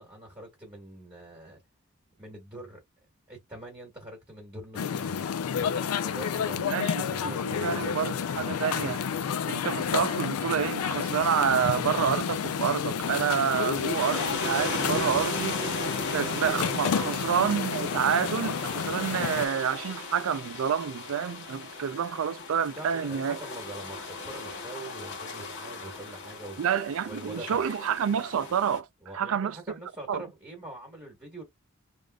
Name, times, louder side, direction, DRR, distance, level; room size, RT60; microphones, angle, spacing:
voice 1, 0.0-1.6 2.2-2.8 3.3-6.7 7.1-8.0 15.0-15.3 16.9-17.2 22.7-26.6 27.0-27.6 29.0-31.4, right 1 dB, 15° right, 1.4 m, -43 dB
sound 1, 4.7-19.5, left 7 dB, 85° left, 0.4 m, -30 dB
voice 2, 6.6-9.0 9.5-15.6 16.1-23.4 26.6-28.9 29.1-29.6 30.1-30.2, right 8 dB, 65° right, 0.4 m, -28 dB
sound 2, 13.0-28.8, left 3 dB, 55° left, 1.2 m, -36 dB
3.4 x 2.5 x 2.3 m
head